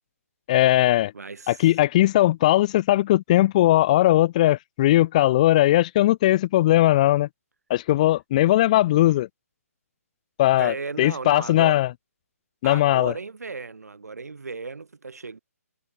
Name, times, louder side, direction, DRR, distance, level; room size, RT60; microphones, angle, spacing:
voice 1, 0.5-1.1 1.5-7.3 7.7-9.3 10.4-11.9 12.6-13.1, left 15 dB, 25° left, 0.5 m, -19 dB
voice 2, 1.1-1.7 10.6-11.8 12.6-15.4, right 4 dB, 85° right, 2.2 m, -35 dB
hypercardioid pair, 155°, 8 cm